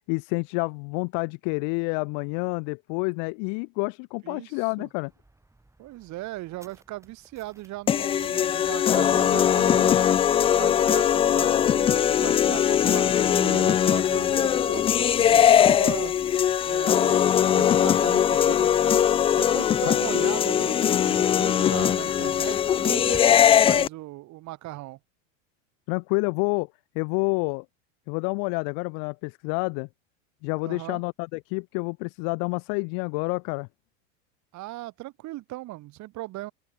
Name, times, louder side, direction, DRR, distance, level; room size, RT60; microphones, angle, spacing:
voice 1, 0.1-5.1 19.9-20.0 25.9-26.7 26.9-27.6 28.1-29.9 30.4-33.7, left 40 dB or more, 60° left, 3.1 m, -28 dB
voice 2, 4.2-4.9 5.8-10.0 10.4-16.2 16.6-19.1 19.4-25.0 30.6-31.0 34.5-36.5, right 18 dB, 45° right, 3.0 m, -38 dB
sound 1, 5.1-23.5, right 2 dB, 5° right, 7.4 m, -55 dB
sound 2, 7.9-23.9, left 9 dB, 15° left, 0.3 m, -21 dB
open air
hypercardioid pair, 100°, 38 cm